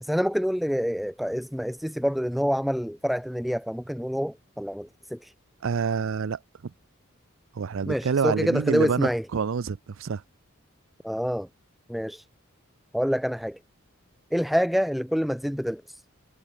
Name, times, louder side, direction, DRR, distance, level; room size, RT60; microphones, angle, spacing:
voice 1, 0.0-5.3 7.9-9.3 11.0-11.5 11.9-12.3 12.9-13.6 14.3-16.0, equal, ahead, 0.3 m, -27 dB
voice 2, 5.6-6.4 7.5-10.2, right 6 dB, 65° right, 0.4 m, -27 dB
head